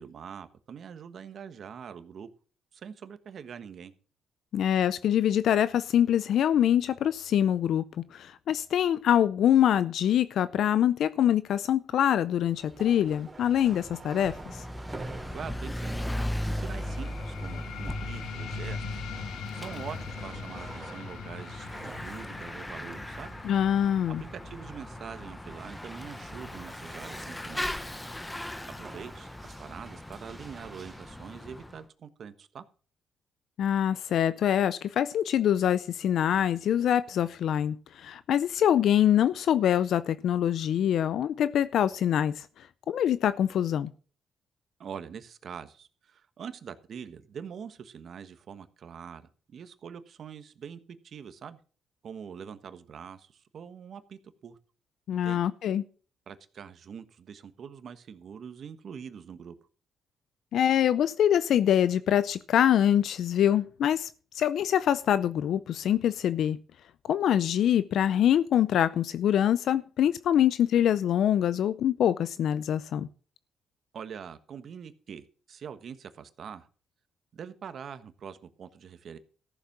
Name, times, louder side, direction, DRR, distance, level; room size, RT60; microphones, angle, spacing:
voice 1, 0.0-2.3 2.7-3.9 15.3-16.0 16.5-19.0 19.5-23.3 24.2-27.7 28.8-32.6 44.8-51.6 52.0-54.6 55.1-55.4 56.3-59.6 73.9-76.7 77.3-79.2, right 7 dB, 55° right, 1.3 m, -44 dB
voice 2, 4.5-7.8 8.1-14.4 23.4-24.2 33.6-42.5 42.9-43.9 55.1-55.8 60.5-64.1 64.4-66.6 67.1-73.1, left 10 dB, 70° left, 0.5 m, -24 dB
sound 1, 12.2-31.2, right 3 dB, 25° right, 2.9 m, -48 dB
Bicycle / Mechanisms, 14.2-31.8, left 1 dB, 10° left, 1.0 m, -38 dB
sound 2, 16.7-27.7, left 5 dB, 85° left, 1.7 m, -42 dB
14.0 x 7.1 x 6.1 m
cardioid pair, 90°, 0 cm